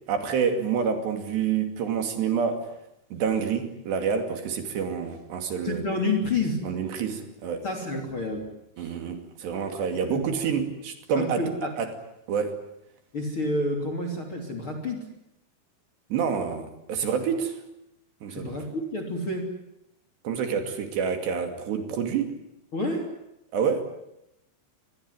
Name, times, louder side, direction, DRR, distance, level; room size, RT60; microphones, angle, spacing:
voice 1, 0.1-2.7 3.1-5.8 6.6-7.6 8.8-11.4 11.8-11.9 12.3-12.6 16.1-17.6 18.2-18.6 20.2-22.3 23.5-23.8, right 6 dB, 65° right, 6 dB, 4.5 m, -28 dB
voice 2, 5.6-6.6 7.6-8.5 8.8-8.9 10.1-10.5 11.1-11.7 13.1-15.1 18.3-19.6 22.7-23.1, left 2 dB, 30° left, 5 dB, 3.1 m, -29 dB
25.0 x 20.5 x 9.5 m, 0.83 s
omnidirectional pair, 5.4 m